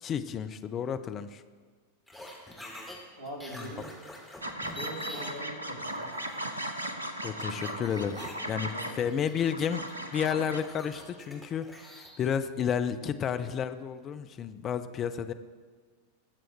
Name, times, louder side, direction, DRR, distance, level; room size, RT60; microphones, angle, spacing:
voice 1, 0.0-1.4 3.5-3.7 7.2-8.2 8.5-15.3, left 8 dB, 30° left, 10 dB, 0.6 m, -31 dB
sound 1, 2.1-3.0 3.2-5.4 5.8-7.1 7.6-12.1, left 1 dB, ahead, 2.7 m, -45 dB
voice 2, 3.2-3.9 4.7-6.1 7.5-7.7 8.5-9.0, right 1 dB, 75° left, -2 dB, 3.0 m, -42 dB
sound 2, 4.4-10.6, right 1 dB, 80° right, 0.9 m, -37 dB
21.5 x 7.6 x 3.4 m, 1.5 s
figure-of-eight pair, 90°, 0 cm